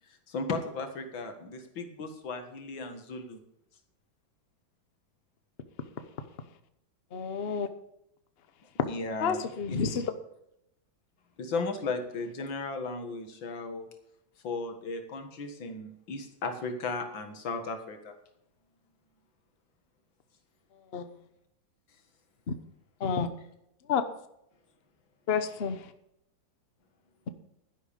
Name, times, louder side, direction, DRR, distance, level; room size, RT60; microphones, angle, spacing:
voice 1, 0.3-3.4 8.8-9.4 9.7-10.0 11.4-13.9 14.4-18.2, left 3 dB, 85° left, 6 dB, 2.4 m, -35 dB
voice 2, 7.1-7.7 9.2-10.1 20.9-21.1 22.5-22.6 23.0-23.3 23.9-24.0 25.3-25.8, left 6 dB, 40° left, 10 dB, 0.9 m, -29 dB
12.0 x 10.5 x 5.2 m, 0.79 s
omnidirectional pair, 2.0 m